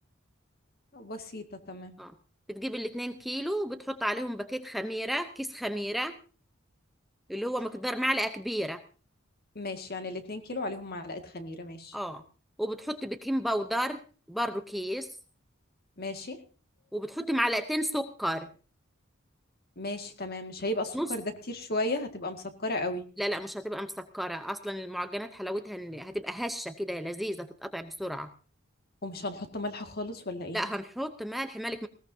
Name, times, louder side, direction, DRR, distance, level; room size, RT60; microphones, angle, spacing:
voice 1, 0.9-1.9 9.6-11.9 16.0-16.4 19.8-23.0 29.0-30.6, left 2 dB, 50° left, 6 dB, 2.0 m, -35 dB
voice 2, 2.5-6.2 7.3-8.8 11.9-12.2 12.6-14.0 14.3-15.1 16.9-18.5 20.9-21.1 23.2-28.3 30.5-31.9, equal, ahead, 8 dB, 0.7 m, -32 dB
19.5 x 17.0 x 2.7 m, 0.37 s
head